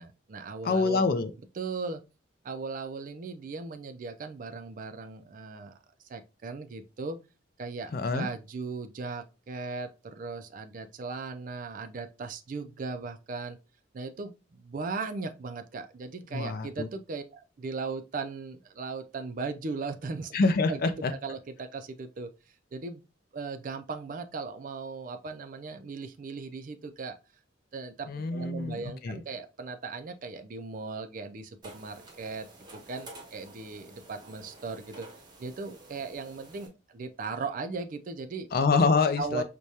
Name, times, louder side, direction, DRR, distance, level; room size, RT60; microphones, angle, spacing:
voice 1, 0.0-1.1 1.6-2.0 2.4-5.8 6.1-7.2 7.6-13.6 13.9-20.4 20.7-20.8 21.2-22.3 22.7-23.0 23.3-27.2 27.7-35.1 35.4-38.5 39.2-39.4, right 4 dB, 45° right, 0.4 m, -38 dB
voice 2, 0.6-1.3 7.9-8.3 16.3-16.9 20.3-21.1 28.1-29.2 38.5-39.4, left 4 dB, 50° left, 0.4 m, -26 dB
sound 1, 31.6-36.7, right 2 dB, 20° right, 0.8 m, -50 dB
4.7 x 2.2 x 2.7 m
head